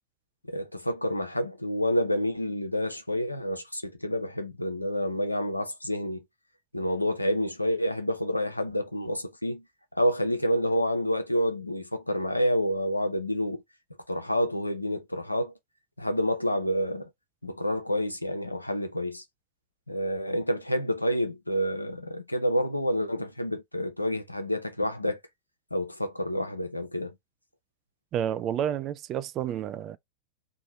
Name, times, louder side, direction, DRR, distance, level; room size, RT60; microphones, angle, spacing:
voice 1, 0.5-6.2 6.7-9.6 9.9-13.6 14.1-15.5 16.0-17.1 17.4-19.2 19.9-25.2 25.7-27.1, equal, 85° left, 0.6 m, -28 dB
voice 2, 28.1-30.0, right 10 dB, 35° right, 0.3 m, -30 dB
2.7 x 2.3 x 3.0 m
figure-of-eight pair, 90°, 0 cm